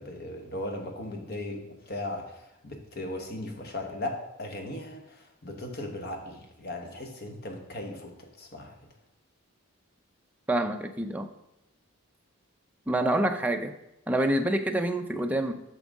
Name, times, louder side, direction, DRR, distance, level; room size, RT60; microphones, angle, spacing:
voice 1, 0.0-8.8, left 1 dB, 45° left, 4 dB, 1.2 m, -37 dB
voice 2, 10.5-11.3 12.9-13.7 14.1-15.6, right 1 dB, 5° right, 4 dB, 0.4 m, -27 dB
9.2 x 6.1 x 3.6 m, 0.90 s
head